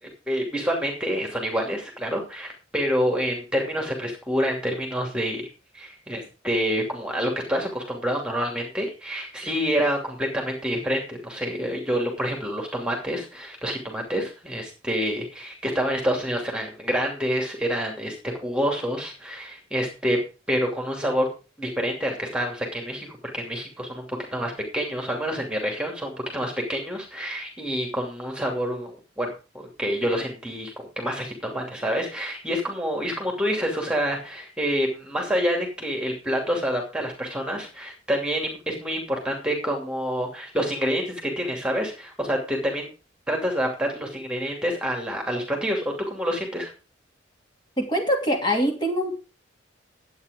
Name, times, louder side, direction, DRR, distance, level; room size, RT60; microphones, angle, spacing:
voice 1, 0.0-5.5 5.7-18.1 18.4-20.2 20.5-21.3 21.6-23.1 23.3-24.0 24.3-29.3 29.8-42.9 43.3-46.7, equal, 5° right, 1 dB, 2.7 m, -27 dB
voice 2, 47.8-49.2, equal, 25° left, 0 dB, 2.7 m, -24 dB
11.0 x 8.8 x 5.2 m, 0.33 s
head